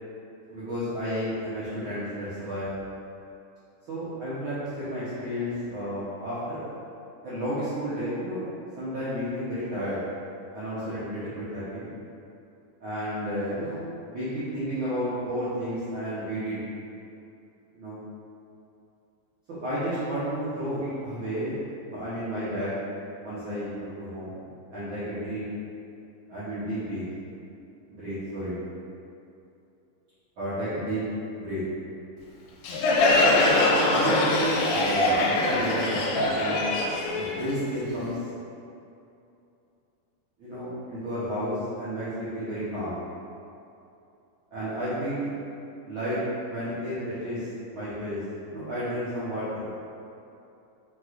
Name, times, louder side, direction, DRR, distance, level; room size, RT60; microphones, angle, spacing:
voice 1, 0.5-2.7 3.9-6.7 7.2-8.4 8.8-10.0 10.5-11.9 12.8-13.8 14.1-16.6 17.7-18.0 19.6-21.5 21.8-22.7 23.2-24.4 24.7-25.4 26.3-27.0 27.9-28.6 30.4-31.0 31.3-31.6 33.7-36.7 37.1-38.3 40.4-43.0 44.5-45.3 45.8-48.2 48.5-49.7, equal, 85° right, -13 dB, 1.1 m, -32 dB
Crowd, 32.6-38.1, left 2 dB, 80° left, 2.1 m, -23 dB
4.7 x 3.7 x 2.4 m, 2.7 s
omnidirectional pair, 3.7 m